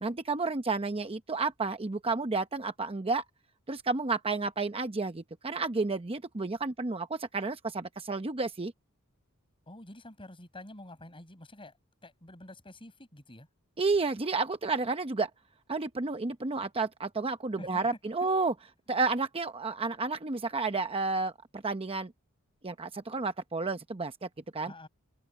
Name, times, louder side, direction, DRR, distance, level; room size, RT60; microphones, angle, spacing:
voice 1, 0.0-3.2 3.7-8.7 13.8-15.3 15.7-18.5 18.9-22.1 22.6-24.7, right 3 dB, 25° right, 0.8 m, -31 dB
voice 2, 9.7-11.7 12.0-13.5 17.6-17.9 24.7-24.9, left 1 dB, 25° left, 6.5 m, -48 dB
head